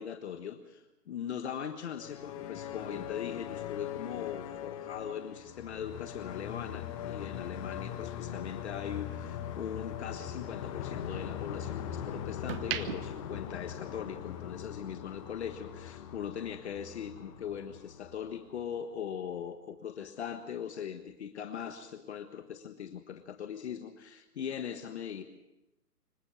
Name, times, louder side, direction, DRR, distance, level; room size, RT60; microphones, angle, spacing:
voice 1, 0.0-25.2, left 8 dB, 45° left, 8 dB, 1.5 m, -40 dB
sound 1, 1.9-18.8, left 9 dB, 20° left, 1.3 m, -41 dB
sound 2, 7.7-10.0 10.4-11.8 12.3-14.4 14.7-15.0, right 9 dB, 35° right, 1.2 m, -41 dB
25.5 x 16.0 x 6.9 m, 0.97 s
hypercardioid pair, 150°, 48 cm